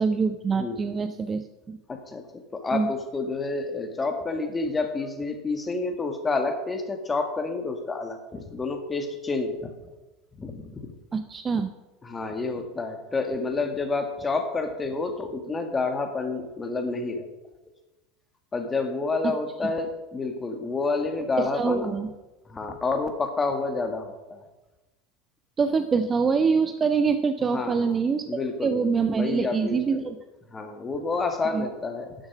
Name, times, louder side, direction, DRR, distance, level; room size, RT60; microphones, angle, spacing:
voice 1, 0.0-1.8 2.7-2.9 11.1-11.7 21.4-22.1 25.6-28.2 28.6-30.2 31.5-31.6, right 5 dB, 25° right, 9 dB, 0.6 m, -25 dB
voice 2, 0.5-1.0 1.9-9.7 10.4-10.9 12.0-17.3 18.5-21.9 22.4-24.4 27.5-28.0 28.3-28.9 29.2-30.0 30.5-32.1, left 3 dB, 20° left, 6 dB, 1.9 m, -29 dB
11.5 x 7.2 x 6.2 m, 1.1 s
figure-of-eight pair, 75°, 0 cm